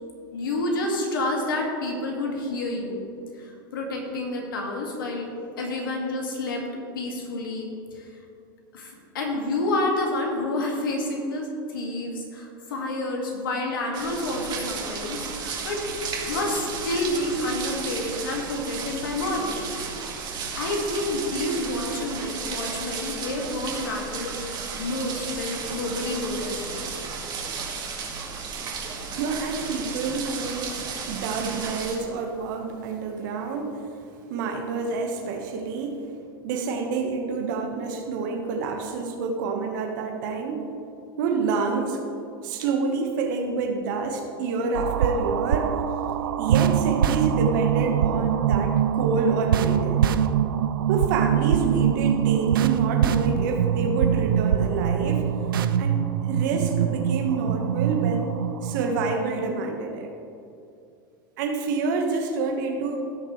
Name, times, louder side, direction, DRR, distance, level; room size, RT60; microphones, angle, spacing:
voice 1, 0.3-3.0 3.3-5.3 5.6-6.6 6.9-8.1 8.7-15.8 16.2-19.7 20.1-26.8, left 2 dB, 75° left, 0 dB, 2.1 m, -29 dB
sound 1, 13.9-32.0, right 5 dB, 40° right, 2.0 m, -34 dB
voice 2, 29.2-30.8 31.1-33.8 34.3-36.0 36.4-40.7 41.2-42.0 42.4-45.7 46.4-50.0 50.9-55.2 55.8-56.0 56.3-58.4 58.6-60.1 61.4-63.1, right 4 dB, 60° right, 3 dB, 1.4 m, -28 dB
sound 2, 44.7-59.2, right 9 dB, 80° right, 0.4 m, -23 dB
16.5 x 6.7 x 3.2 m, 2.6 s
hypercardioid pair, 90°, 11 cm